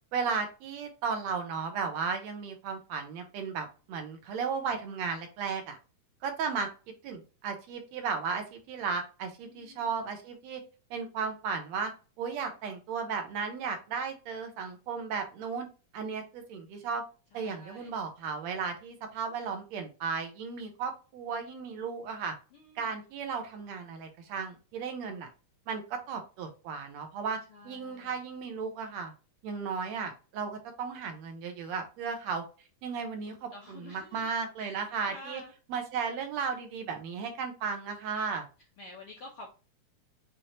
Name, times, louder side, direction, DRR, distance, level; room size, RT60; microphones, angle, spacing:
voice 1, 0.1-5.8 6.2-6.7 7.0-10.6 10.9-11.9 12.2-15.7 15.9-17.0 17.3-22.3 22.8-25.3 25.7-27.4 27.6-29.1 29.4-32.4 32.8-35.4 35.7-38.5, right 5 dB, 70° right, 5 dB, 1.9 m, -35 dB
voice 2, 9.4-10.0 17.3-17.9 22.5-22.9 27.5-28.1 33.5-34.3 34.6-35.5 38.8-39.5, left 2 dB, 70° left, 0 dB, 1.3 m, -49 dB
6.5 x 2.9 x 2.8 m, 0.33 s
omnidirectional pair, 3.4 m